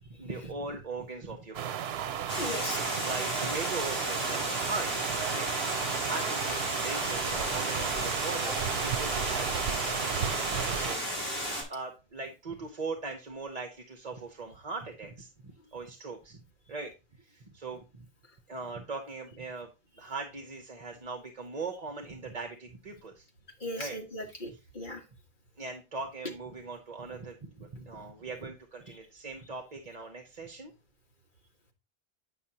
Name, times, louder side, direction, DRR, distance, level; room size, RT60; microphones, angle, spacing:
voice 1, 0.2-1.7 2.4-2.6 3.0-4.9 5.3-11.0 11.7-15.3 15.7-16.9 17.2-18.1 18.5-19.7 20.0-23.2 23.8-24.0 24.5-24.6 25.6-30.7, right 3 dB, 45° right, 4 dB, 1.0 m, -40 dB
sound 1, 1.5-11.0, right 9 dB, 85° right, 0.8 m, -33 dB
Water, 2.3-11.6, equal, 20° left, 3.5 m, -34 dB
voice 2, 2.4-2.8 8.5-8.6 23.6-25.0, left 1 dB, 55° left, 0 dB, 1.9 m, -38 dB
9.3 x 5.7 x 2.8 m, 0.28 s
omnidirectional pair, 1.0 m